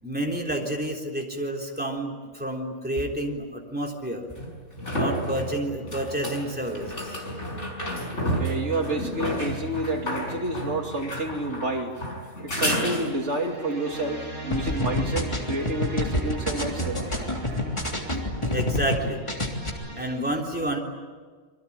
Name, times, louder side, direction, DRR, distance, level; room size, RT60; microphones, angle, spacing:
voice 1, 0.0-4.2 4.9-7.1 18.5-19.3 19.9-20.8, right 1 dB, 5° right, 0 dB, 3.7 m, -29 dB
sound 1, 3.0-3.1 4.4-13.5 16.9-17.0, equal, 70° left, 5.8 m, -31 dB
voice 2, 8.2-12.0 12.4-17.1, right 2 dB, 70° right, 2 dB, 2.9 m, -29 dB
sound 2, 12.9-20.2, right 2 dB, 45° right, 8.1 m, -40 dB
sound 3, 14.5-19.0 19.3-19.7, left 1 dB, 25° left, 3.4 m, -27 dB
27.5 x 23.5 x 8.8 m, 1.5 s
omnidirectional pair, 1.3 m